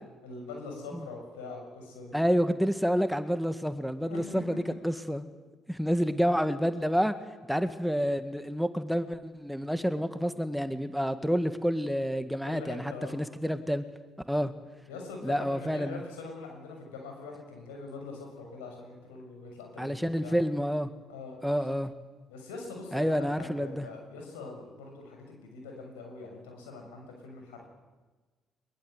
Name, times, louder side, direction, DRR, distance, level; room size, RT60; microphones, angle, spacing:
voice 1, 0.2-2.1 4.0-4.3 4.7-4.8 12.4-13.2 14.9-20.4 21.1-21.7 22.3-27.6, left 3 dB, 90° left, 2 dB, 6.7 m, -43 dB
voice 2, 2.1-5.3 5.7-7.1 7.5-13.8 14.3-14.5 15.2-16.0 19.8-20.9 21.4-21.9 22.9-23.9, equal, ahead, 9 dB, 1.8 m, -29 dB
23.0 x 22.0 x 8.1 m, 1.3 s
hypercardioid pair, 55°, 0 cm